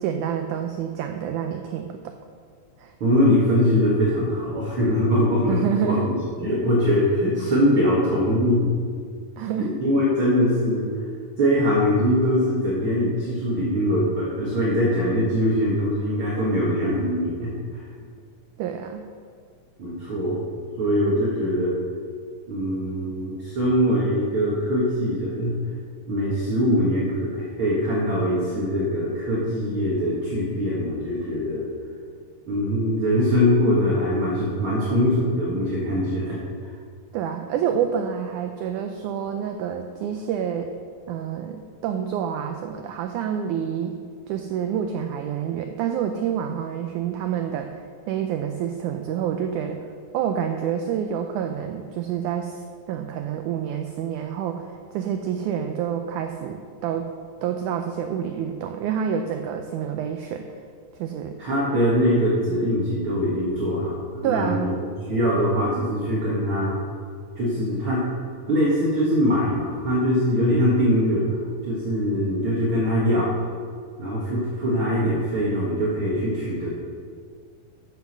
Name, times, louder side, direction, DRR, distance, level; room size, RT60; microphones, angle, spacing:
voice 1, 0.0-2.1 2.8-2.9 5.5-6.1 9.4-9.7 18.6-19.1 37.1-40.7 41.1-44.0 44.3-47.7 48.1-49.8 50.1-57.1 57.4-60.5 61.0-61.4 64.2-64.7, right 8 dB, 85° right, 5 dB, 1.7 m, -28 dB
voice 2, 3.0-8.7 9.6-10.9 11.4-17.8 19.8-20.4 20.8-21.7 22.5-25.6 26.1-31.6 32.5-36.4 61.4-64.7 65.1-66.8 67.4-68.0 68.5-71.3 71.6-73.3 74.0-76.7, equal, 45° right, -6 dB, 2.0 m, -22 dB
8.2 x 8.0 x 6.5 m, 2.1 s
omnidirectional pair, 4.2 m